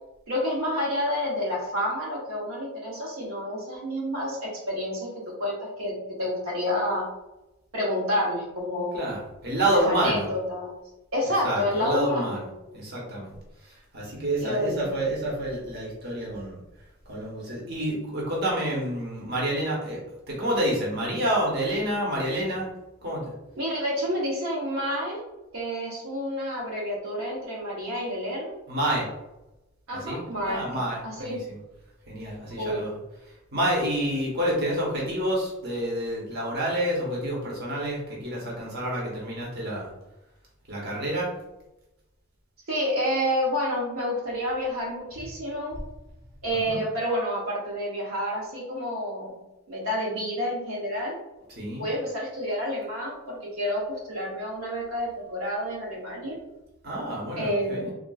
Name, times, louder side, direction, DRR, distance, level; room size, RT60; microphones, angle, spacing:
voice 1, 0.3-5.1 5.4-7.1 7.7-9.2 9.7-10.7 11.1-12.4 14.4-14.9 23.6-25.2 25.5-28.5 29.9-31.4 32.6-32.8 42.7-45.8 46.4-49.4 49.7-51.1 51.8-56.4 57.4-57.8, equal, 75° right, -4 dB, 0.8 m, -29 dB
voice 2, 8.9-10.3 11.3-12.5 12.7-13.3 13.9-16.6 17.1-20.0 20.3-22.7 23.0-23.3 28.7-29.1 29.9-31.6 32.1-33.0 33.5-39.9 40.7-41.3 45.2-45.3 46.5-46.8 51.5-51.8 56.8-57.9, right 1 dB, 50° right, -4 dB, 0.9 m, -28 dB
3.6 x 2.3 x 2.3 m, 0.97 s
head